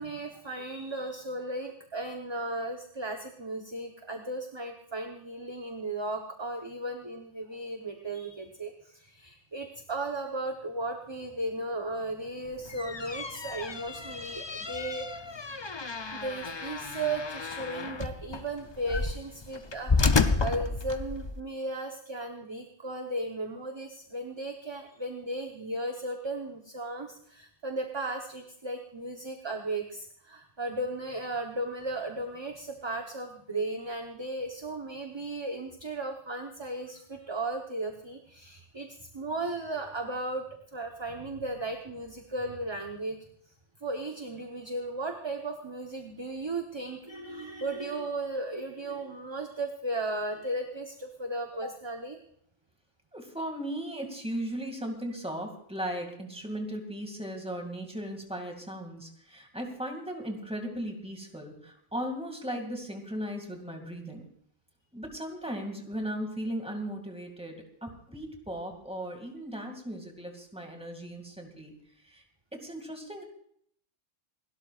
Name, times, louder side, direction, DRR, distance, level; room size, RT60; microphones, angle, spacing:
voice 1, 0.0-15.4 16.1-40.4 40.7-43.2 43.8-52.2, right 2 dB, 25° right, 3 dB, 1.0 m, -35 dB
sound 1, 12.5-21.4, left 4 dB, 30° left, 0.5 m, -31 dB
voice 2, 53.1-64.3 64.9-71.7 72.0-72.2 72.5-73.2, equal, 5° right, 3 dB, 2.3 m, -37 dB
28.0 x 12.5 x 2.5 m, 0.65 s
omnidirectional pair, 1.3 m